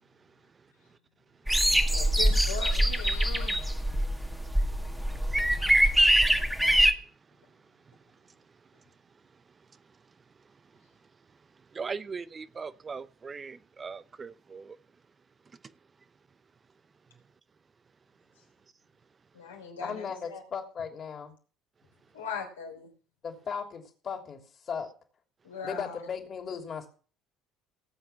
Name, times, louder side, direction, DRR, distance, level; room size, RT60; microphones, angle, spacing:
sound 1, 1.5-6.9, equal, 5° right, 1.8 m, -24 dB
voice 1, 1.9-3.6 19.3-20.4 22.1-22.9 25.4-26.0, left 6 dB, 80° left, 3.4 m, -39 dB
voice 2, 11.7-14.8, right 5 dB, 30° right, 0.8 m, -39 dB
voice 3, 19.8-21.3 23.2-24.4 24.7-24.9 25.6-26.9, left 6 dB, 40° left, 3.0 m, -36 dB
17.5 x 8.0 x 5.8 m
figure-of-eight pair, 60°, 0 cm